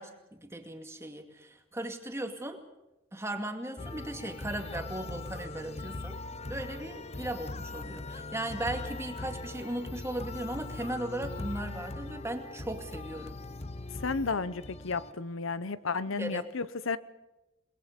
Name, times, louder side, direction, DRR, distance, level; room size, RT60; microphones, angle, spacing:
voice 1, 0.0-2.6 3.1-6.2 6.5-13.4 16.2-16.5, right 1 dB, 15° right, 4 dB, 2.4 m, -37 dB
sound 1, 3.8-15.1, left 2 dB, 30° left, 0.9 m, -40 dB
voice 2, 14.0-17.0, left 4 dB, 80° left, 16 dB, 0.8 m, -32 dB
29.0 x 21.0 x 5.2 m, 0.98 s
head